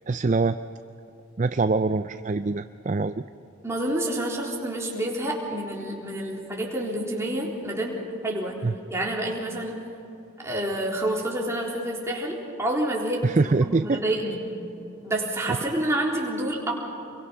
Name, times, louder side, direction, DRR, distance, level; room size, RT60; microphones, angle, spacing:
voice 1, 0.1-0.6 1.4-3.2 8.6-8.7 13.2-14.0 15.5-15.6, right 3 dB, 35° right, 10 dB, 0.4 m, -24 dB
voice 2, 3.6-7.9 8.2-8.6 8.9-9.7 10.4-14.4 15.0-16.7, right 1 dB, 15° right, -3 dB, 3.8 m, -28 dB
29.0 x 23.0 x 5.8 m, 3.0 s
head